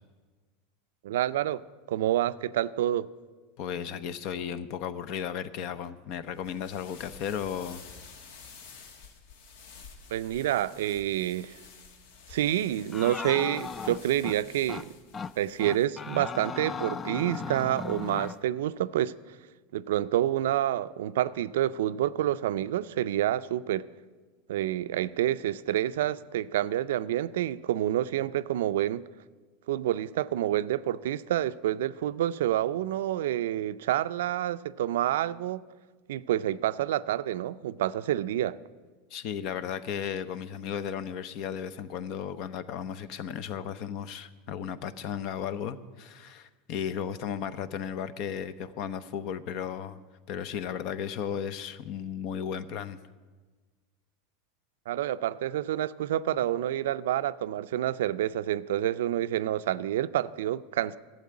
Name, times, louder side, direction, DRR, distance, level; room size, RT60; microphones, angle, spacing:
voice 1, 1.0-1.6 1.9-3.1 10.1-11.6 12.3-14.9 15.4-19.1 19.7-23.8 24.5-29.1 29.7-35.6 36.1-38.6 54.9-61.0, right 12 dB, 85° right, 0.4 m, -28 dB
voice 2, 3.6-7.8 39.1-50.0 50.3-53.0, left 8 dB, 55° left, 0.7 m, -35 dB
sound 1, 6.3-15.9, left 5 dB, 75° left, 1.4 m, -51 dB
sound 2, 12.9-14.4 14.7-14.9 15.1-15.3 15.6-18.4, left 5 dB, 20° left, 0.3 m, -36 dB
12.0 x 7.8 x 9.5 m
supercardioid pair, 130°, 0 cm